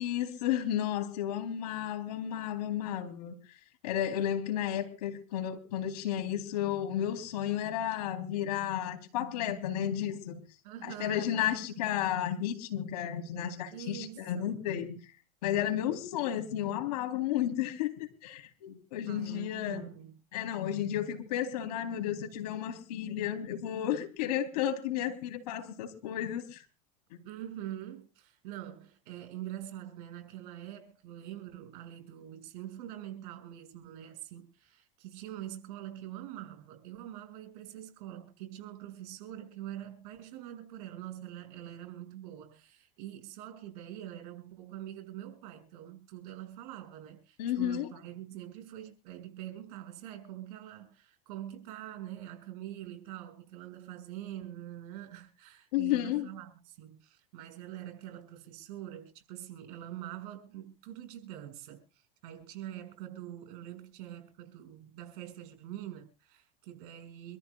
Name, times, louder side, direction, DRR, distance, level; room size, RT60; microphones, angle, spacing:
voice 1, 0.0-3.3 3.8-10.4 10.8-14.9 15.4-19.9 20.3-26.6 27.1-27.2 47.4-47.9 55.7-56.3, left 11 dB, 75° left, 3.7 m, -32 dB
voice 2, 10.6-11.8 13.7-14.7 19.1-20.2 27.2-67.4, right 12 dB, 65° right, 6.2 m, -44 dB
26.0 x 14.0 x 2.4 m
hypercardioid pair, 105°, 21 cm